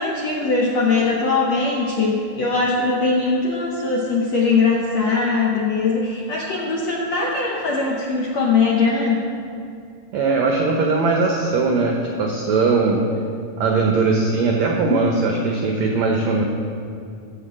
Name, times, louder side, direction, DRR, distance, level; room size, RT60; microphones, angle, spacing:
voice 1, 0.0-9.2, left 4 dB, 75° left, -3 dB, 1.6 m, -21 dB
voice 2, 10.1-13.0 13.6-16.5, right 3 dB, 80° right, 1 dB, 1.6 m, -19 dB
15.0 x 5.3 x 7.4 m, 2.4 s
omnidirectional pair, 4.4 m